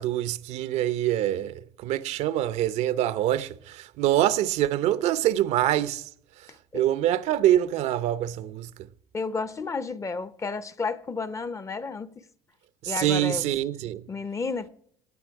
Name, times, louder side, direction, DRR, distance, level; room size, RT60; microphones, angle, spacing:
voice 1, 0.0-6.1 6.7-8.7 12.8-14.0, right 12 dB, 65° right, 0.7 m, -25 dB
voice 2, 9.1-12.2 12.9-13.5 14.1-14.7, left 4 dB, 25° left, 0.8 m, -32 dB
16.5 x 9.6 x 4.7 m
supercardioid pair, 95°, 13 cm